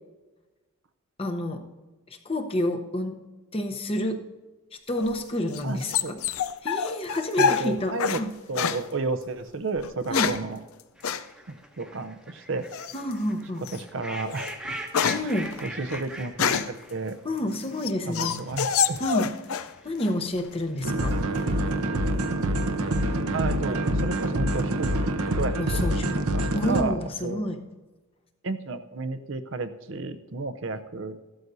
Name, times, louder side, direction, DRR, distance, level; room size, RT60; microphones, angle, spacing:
voice 1, 1.2-1.6 2.1-3.2 3.5-4.3 4.9-6.2 6.6-8.3 10.1-10.4 12.9-13.6 15.1-15.6 17.2-18.4 19.0-19.3 19.8-21.2 25.6-27.6, left 1 dB, 25° left, 5 dB, 0.8 m, -29 dB
sound 1, 5.0-8.2 8.5-8.8 9.8-10.5 11.0-11.2 12.7-13.1 13.6-13.8 14.2-16.8 17.4-19.7 20.0-20.6, left 7 dB, 75° left, 0.5 m, -27 dB
voice 2, 5.6-6.2 7.4-8.2 8.5-10.6 11.5-12.7 13.7-14.5 15.2-15.3 15.6-17.2 18.1-19.0 23.3-25.9 26.3-27.5 28.4-31.2, right 3 dB, 60° right, 11 dB, 0.6 m, -32 dB
sound 2, 11.0-20.1 20.6-21.3, right 1 dB, 5° right, 0.9 m, -42 dB
sound 3, 20.8-26.8, right 1 dB, 85° right, 0.8 m, -26 dB
15.0 x 12.5 x 2.7 m, 1.2 s
head